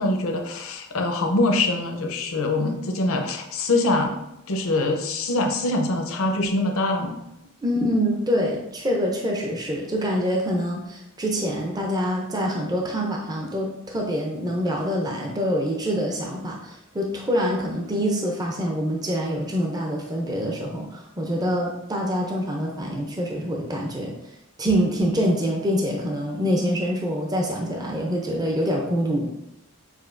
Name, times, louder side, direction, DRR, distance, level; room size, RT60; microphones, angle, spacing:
voice 1, 0.0-4.2 4.5-7.2, left 2 dB, 70° left, 3 dB, 0.7 m, -24 dB
voice 2, 7.6-24.1 24.6-29.3, equal, 20° right, 0 dB, 0.5 m, -25 dB
6.5 x 2.7 x 2.5 m, 0.85 s
head